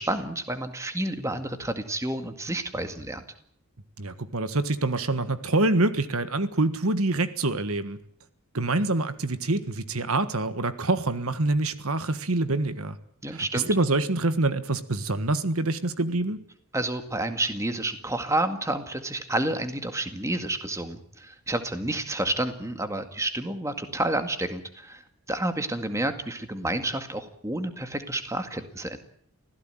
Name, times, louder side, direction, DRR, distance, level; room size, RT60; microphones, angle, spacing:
voice 1, 0.0-3.2 13.2-13.7 16.7-29.0, right 1 dB, 15° right, 8 dB, 2.0 m, -30 dB
voice 2, 4.0-8.0 8.5-13.0 13.3-16.4, right 2 dB, 80° right, 12 dB, 1.6 m, -26 dB
25.5 x 16.5 x 9.2 m, 0.66 s
head